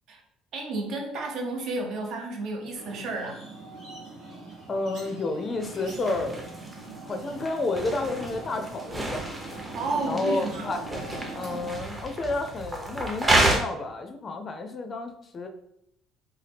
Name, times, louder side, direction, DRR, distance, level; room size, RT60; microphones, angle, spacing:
voice 1, 0.5-3.4 9.7-10.8, right 2 dB, 65° right, 1 dB, 0.7 m, -32 dB
sound 1, 2.7-11.7, right 2 dB, 85° right, 1.1 m, -41 dB
voice 2, 4.7-6.4 7.0-9.8 10.1-10.8 11.4-15.5, left 2 dB, 35° left, 6 dB, 0.4 m, -31 dB
sound 2, 5.6-13.6, right 1 dB, 20° right, 0.6 m, -30 dB
2.7 x 2.2 x 3.4 m, 0.76 s
supercardioid pair, 95°, 0 cm